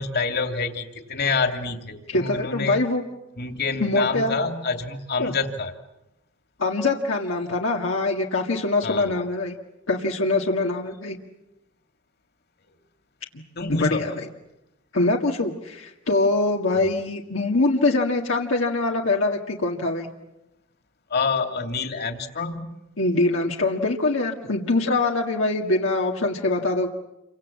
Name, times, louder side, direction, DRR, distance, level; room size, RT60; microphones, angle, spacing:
voice 1, 0.0-2.8 3.4-5.7 8.8-9.1 13.6-14.1 16.7-16.8 21.1-22.7, left 4 dB, 55° left, 6 dB, 2.8 m, -27 dB
voice 2, 2.1-3.0 3.8-4.4 5.2-5.3 6.6-9.6 9.9-11.2 13.7-14.3 14.9-20.1 23.0-26.9, left 2 dB, 80° left, 0 dB, 1.9 m, -23 dB
29.0 x 25.0 x 7.5 m, 0.92 s
head